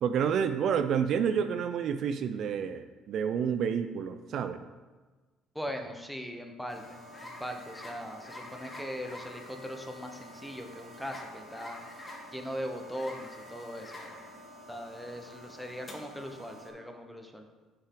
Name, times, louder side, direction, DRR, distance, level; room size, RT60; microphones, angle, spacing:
voice 1, 0.0-4.6, right 7 dB, 65° right, 9 dB, 0.3 m, -29 dB
voice 2, 5.5-11.8 12.3-13.9 14.7-17.5, equal, ahead, 4 dB, 0.9 m, -40 dB
sound 1, 6.7-16.7, left 1 dB, 30° left, 1.6 m, -47 dB
6.9 x 5.4 x 3.8 m, 1.3 s
supercardioid pair, 80°, 0 cm